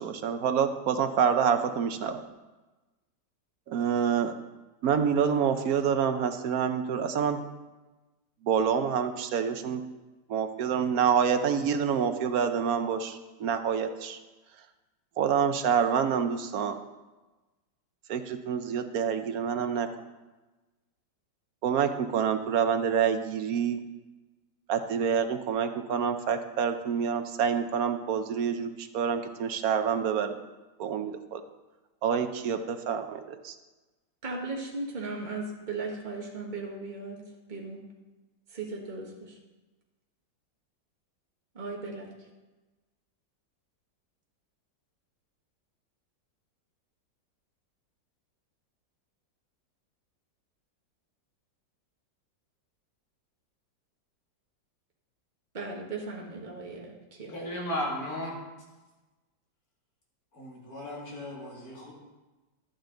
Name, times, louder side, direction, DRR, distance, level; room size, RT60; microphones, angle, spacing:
voice 1, 0.0-2.2 3.7-4.3 4.8-7.4 8.4-9.8 10.3-14.2 15.2-16.8 18.1-19.9 21.6-23.8 24.7-30.3 30.8-31.4 32.0-33.5, right 7 dB, 65° right, 8 dB, 1.0 m, -27 dB
voice 2, 34.2-37.2 37.5-37.8 38.5-39.4 41.5-42.1 55.5-57.3, right 3 dB, 25° right, -1 dB, 1.5 m, -37 dB
voice 3, 57.3-58.3 60.3-61.9, left 1 dB, 55° left, -3 dB, 2.9 m, -35 dB
11.5 x 9.0 x 3.9 m, 1.2 s
omnidirectional pair, 2.0 m